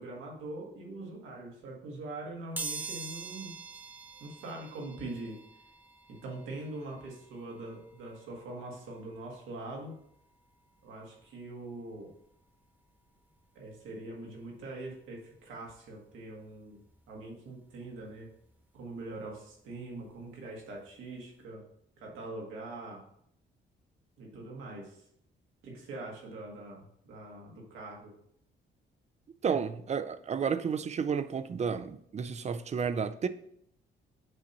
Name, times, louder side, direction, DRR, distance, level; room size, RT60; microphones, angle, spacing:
voice 1, 0.0-3.5 4.2-5.4 6.2-10.0 10.8-12.1 13.6-16.8 17.1-18.3 18.7-21.6 22.0-23.0 24.2-25.0 25.6-28.1, right 2 dB, 90° right, 1.7 m, -43 dB
sound 1, 2.6-13.2 13.7-13.8 14.9-15.0 15.3-17.4 17.8-20.4 20.7-20.9 21.2-21.3, right 4 dB, 10° right, 1.1 m, -47 dB
voice 2, 29.4-33.3, right 6 dB, 35° right, 0.4 m, -31 dB
7.6 x 2.9 x 5.3 m
cardioid pair, 90°, 20 cm